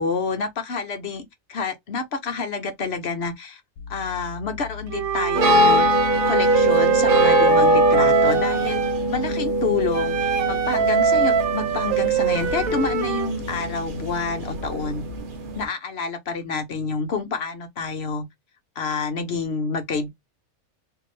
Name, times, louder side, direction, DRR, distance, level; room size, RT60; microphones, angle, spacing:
voice 1, 0.0-3.6 3.9-5.9 6.3-8.8 9.1-15.0 15.5-18.3 18.8-20.1, left 4 dB, 55° left, 1.0 m, -28 dB
sound 1, 3.8-15.2, left 5 dB, 85° left, 1.2 m, -38 dB
Wind instrument woodwind instrument, 4.9-9.0 9.9-13.3, right 7 dB, 80° right, 1.2 m, -23 dB
sound 2, 5.3-15.6, right 1 dB, 45° right, 0.8 m, -22 dB
4.1 x 2.9 x 3.2 m
omnidirectional pair, 1.4 m